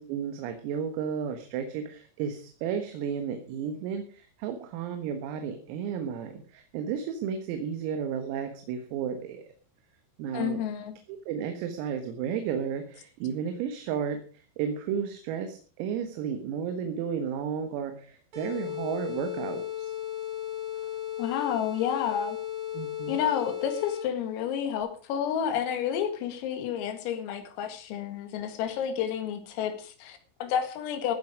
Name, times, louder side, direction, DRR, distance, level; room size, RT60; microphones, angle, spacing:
voice 1, 0.0-9.4 10.2-10.6 11.3-19.9 22.7-23.2, right 7 dB, 90° right, 6 dB, 4.1 m, -33 dB
voice 2, 10.3-11.0 21.2-22.4 23.1-31.2, left 9 dB, 85° left, 8 dB, 4.6 m, -30 dB
sound 1, 18.3-24.3, left 12 dB, 45° right, 4.9 m, -35 dB
15.5 x 9.8 x 5.0 m, 0.41 s
omnidirectional pair, 5.9 m